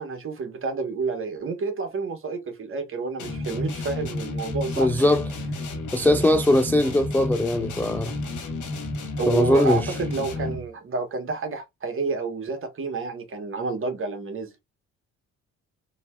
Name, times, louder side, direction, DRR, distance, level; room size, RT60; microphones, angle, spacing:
voice 1, 0.0-5.2 9.2-14.5, right 4 dB, 45° right, 1.2 m, -30 dB
sound 1, 3.2-10.7, left 2 dB, 75° left, 1.3 m, -32 dB
voice 2, 4.8-5.2 5.9-8.1 9.3-9.9, left 1 dB, 5° left, 0.3 m, -20 dB
3.9 x 2.8 x 2.3 m
cardioid pair, 90°, 30 cm